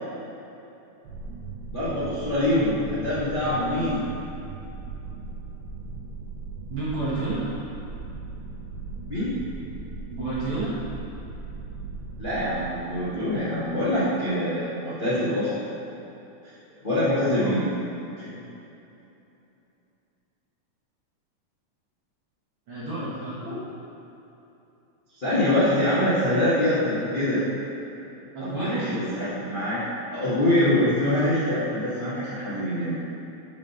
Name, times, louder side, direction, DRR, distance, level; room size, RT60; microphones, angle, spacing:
sound 1, 1.0-14.3, right 4 dB, 80° right, 1.8 m, -38 dB
voice 1, 1.7-4.0 9.1-9.3 12.2-15.5 16.8-17.7 18.2-18.4 23.4-23.6 25.2-27.5 28.4-29.8 30.1-33.0, left 1 dB, 75° left, -12 dB, 0.4 m, -24 dB
voice 2, 6.7-7.4 10.1-10.7 17.4-17.6 22.7-23.4 28.3-28.9, right 2 dB, 60° right, -9 dB, 1.5 m, -30 dB
5.2 x 4.8 x 5.4 m, 2.9 s
omnidirectional pair, 3.5 m